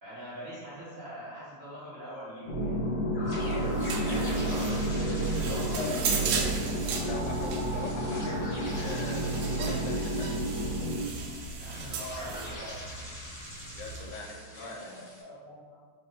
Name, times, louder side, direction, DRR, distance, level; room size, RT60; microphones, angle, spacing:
voice 1, 0.0-2.8 3.2-6.5 11.6-12.9 14.6-15.7, equal, 65° right, -12 dB, 0.8 m, -43 dB
sound 1, 2.5-11.0, right 1 dB, 70° left, 1.4 m, -30 dB
sound 2, 3.2-15.2, left 1 dB, 45° left, 0.5 m, -44 dB
sound 3, 3.4-14.1, right 5 dB, 85° right, 1.4 m, -37 dB
voice 2, 5.5-6.5 6.9-10.4 13.6-15.0, left 3 dB, 85° left, 2 dB, 2.0 m, -41 dB
4.5 x 3.3 x 3.5 m, 1.6 s
omnidirectional pair, 3.4 m